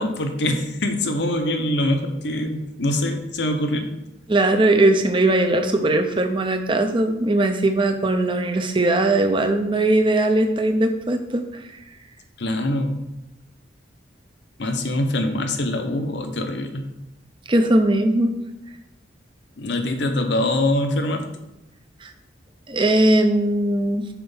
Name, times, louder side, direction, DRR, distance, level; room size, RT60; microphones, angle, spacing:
voice 1, 0.0-3.9 12.4-13.0 14.6-16.8 19.6-21.3, left 1 dB, 65° left, 6 dB, 0.8 m, -24 dB
voice 2, 4.3-11.6 17.5-18.4 22.0-22.1 22.7-24.1, right 1 dB, 25° right, 5 dB, 0.6 m, -19 dB
5.9 x 4.4 x 5.5 m, 0.90 s
head